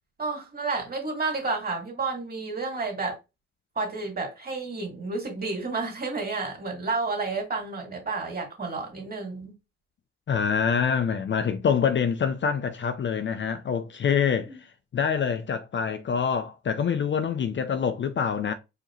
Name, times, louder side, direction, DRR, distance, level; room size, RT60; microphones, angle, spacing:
voice 1, 0.2-3.2 3.8-9.5 14.5-14.6, right 3 dB, 30° right, 2.2 m, -31 dB
voice 2, 10.3-14.6 14.9-18.5, left 7 dB, 40° left, 0.5 m, -25 dB
4.7 x 2.9 x 3.1 m
cardioid pair, 90°, 30 cm